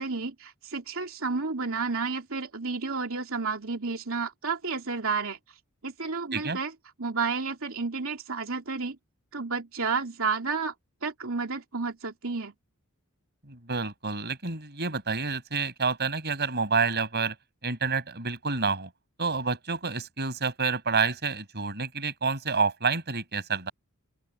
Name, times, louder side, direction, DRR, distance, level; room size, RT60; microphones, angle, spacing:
voice 1, 0.0-5.4 5.8-6.7 7.0-9.0 9.3-10.7 11.0-12.5, right 4 dB, 65° right, 3.2 m, -31 dB
voice 2, 13.5-17.3 17.6-18.9 19.2-23.7, right 4 dB, 50° right, 6.0 m, -28 dB
open air
head